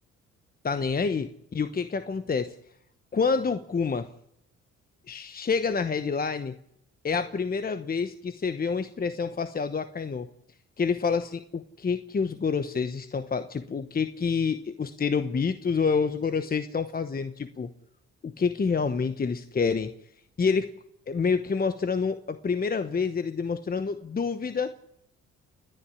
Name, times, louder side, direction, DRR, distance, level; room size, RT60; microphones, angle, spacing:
voice 1, 0.6-2.5 3.1-4.1 5.1-6.5 7.0-10.3 10.8-17.7 18.2-19.9 20.4-20.7 21.1-24.8, left 5 dB, 30° left, 11 dB, 1.0 m, -28 dB
29.5 x 10.0 x 9.9 m, 0.75 s
cardioid pair, 90°, 30 cm